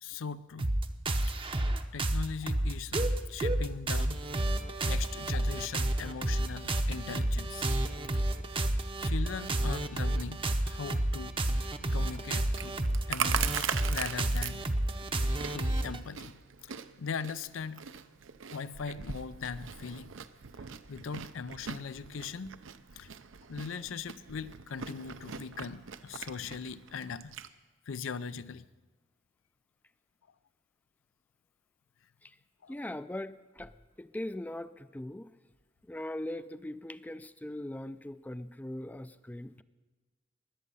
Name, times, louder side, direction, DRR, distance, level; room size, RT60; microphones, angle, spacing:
voice 1, 0.0-0.7 1.3-1.6 1.9-4.3 4.8-7.7 9.0-11.4 11.9-12.8 13.1-14.7 15.5-16.7 17.0-17.9 18.5-20.2 20.9-22.6 22.9-23.1 23.5-27.4 27.9-28.7 32.6-32.7, left 6 dB, 85° left, 15 dB, 0.5 m, -40 dB
sound 1, 0.6-16.0, right 1 dB, 25° right, 0.7 m, -30 dB
Chewing mastication, 11.9-27.5, right 8 dB, 75° right, 0.6 m, -41 dB
voice 2, 32.7-33.7 34.0-35.3 35.9-39.6, left 1 dB, 10° left, 14 dB, 0.4 m, -40 dB
21.5 x 8.5 x 5.5 m, 1.3 s
head